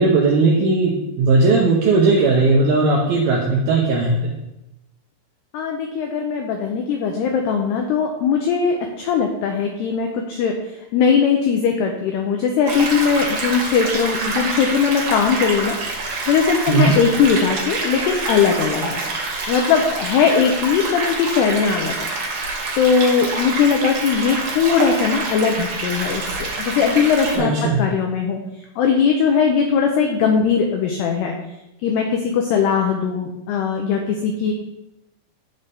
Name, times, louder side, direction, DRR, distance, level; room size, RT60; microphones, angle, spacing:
voice 1, 0.0-4.3 16.7-16.9 27.4-27.8, right 3 dB, 80° right, -3 dB, 2.2 m, -17 dB
voice 2, 5.5-10.5 10.9-15.8 16.3-19.0 19.5-22.0 22.8-27.5 27.8-28.4 28.8-31.3 31.8-34.5, left 6 dB, 90° left, 3 dB, 2.3 m, -19 dB
sound 1, 12.7-27.4, right 3 dB, 50° right, 2.3 m, -26 dB
15.0 x 5.5 x 3.6 m, 0.92 s
omnidirectional pair, 5.8 m